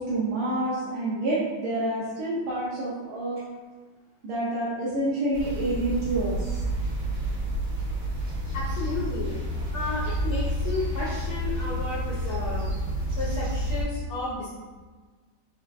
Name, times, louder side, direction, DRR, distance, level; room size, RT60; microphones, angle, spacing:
voice 1, 0.1-3.4 4.2-6.6, right 2 dB, 80° right, -8 dB, 1.8 m, -28 dB
sound 1, 5.3-13.8, equal, 55° right, 2.0 m, -29 dB
voice 2, 8.5-9.4 9.7-12.7 13.2-14.5, left 2 dB, 70° left, -13 dB, 2.4 m, -32 dB
4.8 x 4.6 x 2.4 m, 1.4 s
omnidirectional pair, 2.3 m